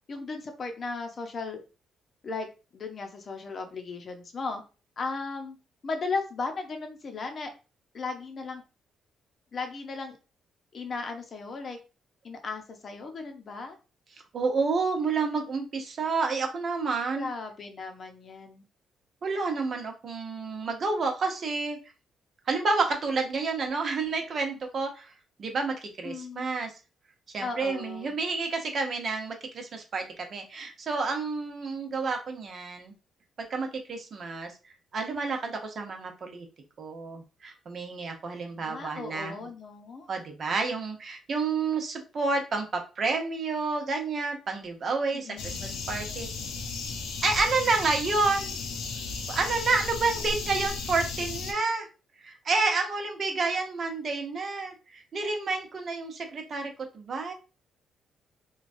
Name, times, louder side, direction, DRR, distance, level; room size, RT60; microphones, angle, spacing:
voice 1, 0.1-1.6 2.2-4.6 5.0-5.6 5.8-7.5 7.9-8.6 9.5-10.2 10.7-11.8 12.2-13.7 17.2-18.6 26.0-26.5 27.4-28.1 38.6-40.1 45.1-45.7, left 4 dB, 45° left, 5 dB, 0.6 m, -36 dB
voice 2, 14.3-17.3 19.2-21.8 22.5-25.1 25.4-26.7 27.3-32.9 33.5-36.5 36.8-39.5 40.1-46.3 47.2-48.5 49.3-51.9 52.2-57.3, right 4 dB, 50° right, 3 dB, 0.8 m, -29 dB
sound 1, 45.4-51.5, left 4 dB, 85° left, 0.5 m, -35 dB
3.1 x 2.3 x 2.5 m, 0.31 s
cardioid pair, 90°, 0 cm